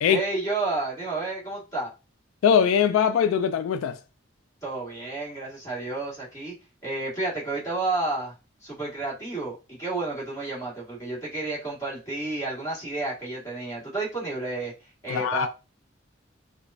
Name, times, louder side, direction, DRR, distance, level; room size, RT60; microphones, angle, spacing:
voice 1, 0.1-1.9 4.6-6.5 6.8-8.3 8.6-14.7 15.0-15.5, right 2 dB, 15° left, 1.7 m, -31 dB
voice 2, 2.4-4.0 15.1-15.5, left 7 dB, 80° left, 0.3 m, -21 dB
4.9 x 2.3 x 2.6 m
head